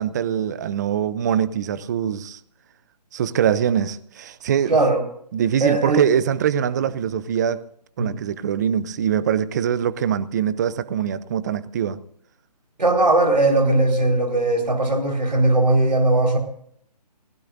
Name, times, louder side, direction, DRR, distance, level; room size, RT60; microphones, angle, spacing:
voice 1, 0.0-2.4 3.1-4.8 5.3-7.6 8.0-12.0, right 9 dB, 25° right, 0.6 m, -23 dB
voice 2, 4.7-5.0 5.6-6.0 8.0-8.2 12.8-16.4, right 2 dB, 80° right, 4.6 m, -19 dB
24.0 x 16.0 x 2.6 m
figure-of-eight pair, 150°, 21 cm